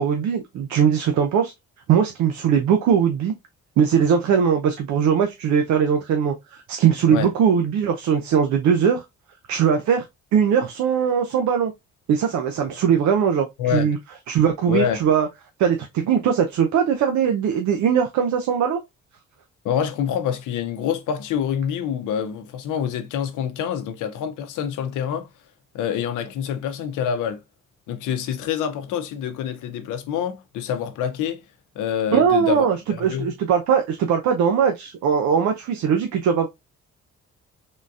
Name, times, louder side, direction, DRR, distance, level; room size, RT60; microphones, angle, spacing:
voice 1, 0.0-1.5 1.9-3.3 3.8-9.0 9.5-10.0 10.3-11.7 12.1-14.0 14.3-15.3 15.6-18.8 32.1-36.5, right 7 dB, 70° right, 0.6 m, -20 dB
voice 2, 14.7-15.0 19.6-25.3 25.7-27.4 27.9-31.4 31.8-32.7 33.0-33.3, left 8 dB, 85° left, 0.7 m, -26 dB
3.7 x 2.6 x 2.4 m
cardioid pair, 90°, 30 cm